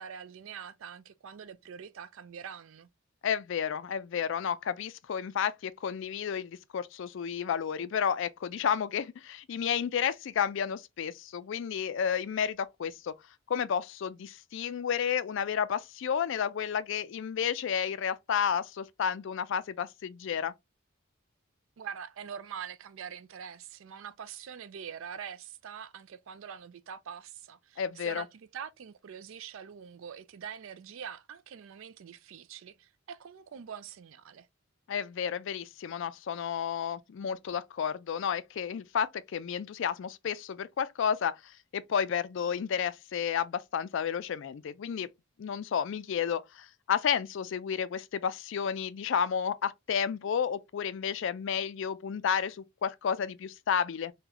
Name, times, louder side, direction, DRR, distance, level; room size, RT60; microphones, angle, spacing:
voice 1, 0.0-2.9 21.8-34.5, right 7 dB, 70° right, 0.4 m, -44 dB
voice 2, 3.2-13.1 13.5-20.5 27.8-28.2 34.9-45.1 45.4-54.1, left 7 dB, 60° left, 0.3 m, -31 dB
3.8 x 2.2 x 2.8 m
head